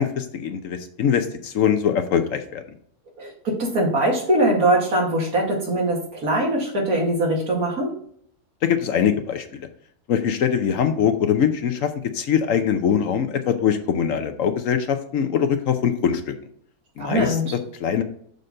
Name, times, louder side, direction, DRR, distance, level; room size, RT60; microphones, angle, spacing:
voice 1, 0.0-2.6 8.6-9.7 10.1-16.3 17.0-17.4 17.8-18.0, left 8 dB, 65° left, 8 dB, 1.0 m, -22 dB
voice 2, 3.2-7.9 17.0-17.4, right 1 dB, 70° right, -1 dB, 2.5 m, -22 dB
6.7 x 4.1 x 6.3 m, 0.63 s
omnidirectional pair, 1.6 m